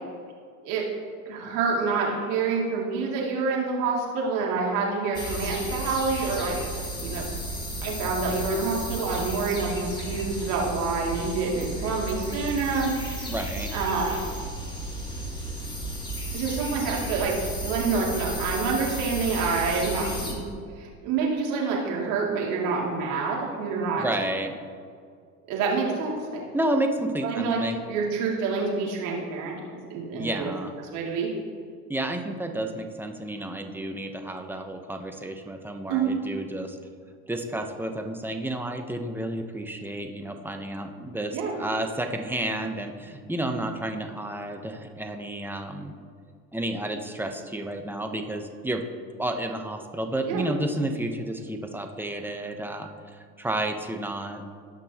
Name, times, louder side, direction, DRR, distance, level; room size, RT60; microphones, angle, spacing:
voice 1, 1.3-7.3 7.8-13.3 13.7-14.3 16.3-20.5 20.8-24.1 25.5-26.4 27.2-27.6 27.9-29.5 29.9-30.5 30.9-31.3 35.9-36.1 41.3-41.5 50.3-50.5, right 4 dB, 75° right, -2 dB, 2.7 m, -27 dB
sound 1, 5.1-20.3, right 1 dB, 10° left, 2.2 m, -33 dB
voice 2, 13.3-13.7 24.0-24.6 26.5-27.8 30.1-30.7 31.9-36.8 37.3-45.9 46.5-48.8 49.2-52.9 53.4-54.4, right 1 dB, 5° right, 5 dB, 0.9 m, -31 dB
17.5 x 6.1 x 3.0 m, 2.1 s
supercardioid pair, 100°, 42 cm